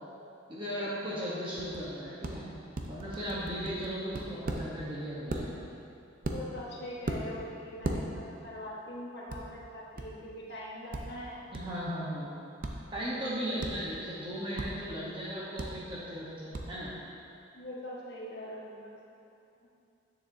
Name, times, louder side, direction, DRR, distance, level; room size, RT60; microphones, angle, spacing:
voice 1, 0.5-2.4 2.9-5.6 11.5-12.3 12.9-16.9, equal, 25° right, -8 dB, 0.9 m, -36 dB
sound 1, 1.6-1.8 2.2-2.3 2.7-4.6 5.3-5.4 6.2-6.7 7.0-7.2 7.8-8.0 9.3-9.4 10.0-10.1 10.9-11.0 11.5-11.6 12.6-12.7 13.6-13.7 14.6-14.7 15.6-15.7 16.5-16.6, right 2 dB, 45° right, 0.6 m, -35 dB
voice 2, 6.3-11.4 17.5-19.3, left 1 dB, 55° left, -5 dB, 1.4 m, -42 dB
9.8 x 6.9 x 2.7 m, 2.6 s
head